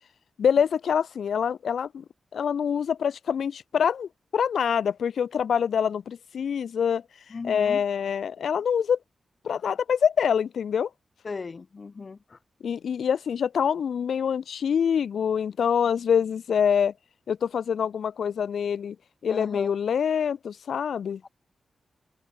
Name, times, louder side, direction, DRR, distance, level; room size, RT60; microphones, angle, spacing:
voice 1, 0.4-2.0 2.3-7.0 7.4-9.0 9.4-10.9 12.6-16.9 17.3-18.9 19.2-21.2, left 7 dB, 90° left, 5.0 m, -25 dB
voice 2, 7.3-7.8 11.2-12.4 19.3-19.7 21.2-21.3, left 4 dB, 40° left, 3.6 m, -36 dB
open air
wide cardioid pair, 135°, 0 cm